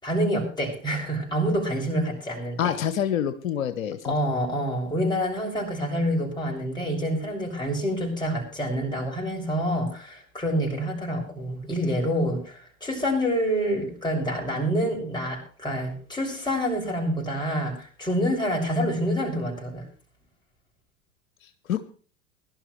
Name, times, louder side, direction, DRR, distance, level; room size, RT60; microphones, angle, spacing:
voice 1, 0.0-2.7 4.0-19.8, equal, 10° left, -1 dB, 6.8 m, -27 dB
voice 2, 2.6-4.1 21.7-21.8, left 9 dB, 70° left, 11 dB, 1.1 m, -26 dB
21.0 x 12.0 x 3.3 m, 0.41 s
hypercardioid pair, 90°, 41 cm